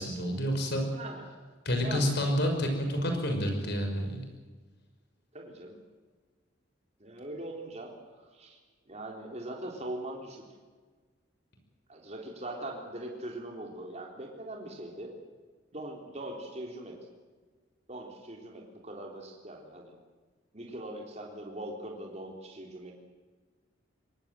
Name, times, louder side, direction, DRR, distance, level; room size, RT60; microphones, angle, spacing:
voice 1, 0.0-0.8 1.6-4.2, equal, 55° left, 4 dB, 5.8 m, -29 dB
voice 2, 0.9-1.3 1.8-2.2 5.3-5.8 7.0-7.9 8.3-8.6 8.9-10.4 11.9-15.1 15.7-17.0 17.9-20.0 20.5-22.9, right 1 dB, 35° right, 0 dB, 3.7 m, -41 dB
24.0 x 19.0 x 7.9 m, 1.4 s
head